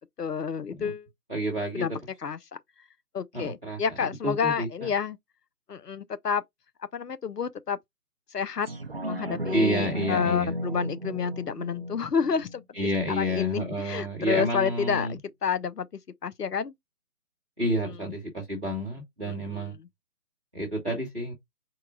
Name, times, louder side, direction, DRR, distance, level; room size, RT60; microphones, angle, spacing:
voice 1, 0.2-1.1 1.7-1.9 2.2-2.4 3.1-5.2 5.7-6.4 6.9-7.8 8.3-8.7 9.0-12.6 13.1-15.9 16.2-16.7 17.8-18.0 19.3-19.9, left 6 dB, 85° left, 0.7 m, -29 dB
voice 2, 1.3-1.8 3.3-3.8 4.2-4.9 9.5-10.5 12.7-15.2 17.6-19.7 20.5-21.3, equal, 5° right, 0.7 m, -29 dB
sound 1, 8.7-13.7 14.1-14.2, equal, 40° right, 0.4 m, -35 dB
4.6 x 2.2 x 3.7 m
figure-of-eight pair, 145°, 46 cm